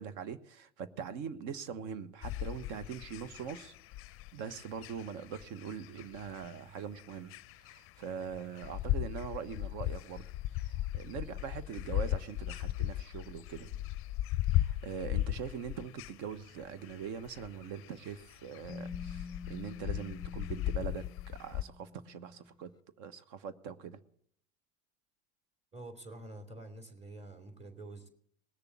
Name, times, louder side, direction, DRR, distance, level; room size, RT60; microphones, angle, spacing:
voice 1, 0.0-3.7 4.3-10.2 10.5-13.8 14.5-22.7 23.0-24.0, right 7 dB, 55° right, 1.3 m, -42 dB
sound 1, 2.2-21.6, left 15 dB, 40° left, 0.5 m, -37 dB
sound 2, 18.7-22.5, left 4 dB, 10° left, 0.9 m, -47 dB
voice 2, 25.7-28.1, right 2 dB, 20° right, 3.1 m, -47 dB
19.5 x 6.9 x 8.6 m
hypercardioid pair, 90°, 34 cm